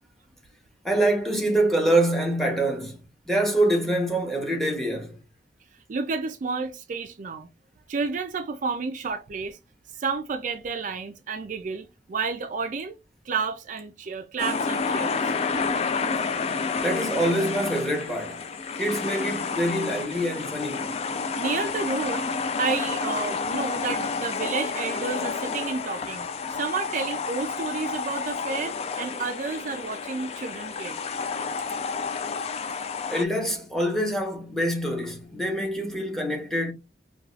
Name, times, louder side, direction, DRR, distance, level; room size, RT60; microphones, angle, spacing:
voice 1, 0.8-3.0 3.3-5.2 16.8-18.4 18.8-20.9 33.1-36.7, right 1 dB, ahead, 0.9 m, -25 dB
voice 2, 5.9-7.5 7.9-9.6 10.0-13.0 13.3-15.3 21.4-22.3 22.6-26.3 26.5-31.0, right 4 dB, 45° right, 0.4 m, -30 dB
sound 1, 14.4-33.2, left 4 dB, 35° left, 0.4 m, -30 dB
4.7 x 2.3 x 2.4 m
head